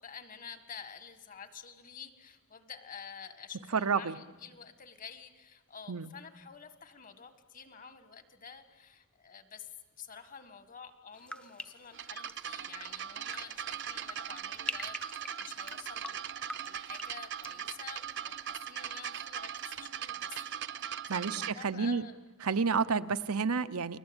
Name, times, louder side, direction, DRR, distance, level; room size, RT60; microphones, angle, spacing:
voice 1, 0.0-20.4 21.1-22.2, left 6 dB, 35° left, 11 dB, 1.7 m, -49 dB
voice 2, 3.7-4.2 5.9-6.1 21.1-22.0 22.4-24.0, right 5 dB, 85° right, 11 dB, 0.9 m, -30 dB
sound 1, 11.1-19.1 19.3-19.9, left 1 dB, 5° left, 0.8 m, -46 dB
sound 2, 11.9-21.5, right 9 dB, 55° right, 0.8 m, -40 dB
29.5 x 21.0 x 8.9 m, 1.2 s
head